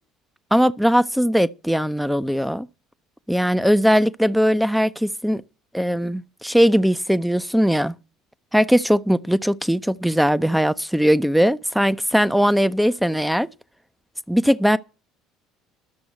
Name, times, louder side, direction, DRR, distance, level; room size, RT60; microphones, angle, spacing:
voice 1, 0.5-2.7 3.3-5.4 5.7-7.9 8.5-13.5 14.3-14.8, equal, ahead, 0.6 m, -19 dB
11.5 x 7.0 x 7.8 m
figure-of-eight pair, 60°, 0 cm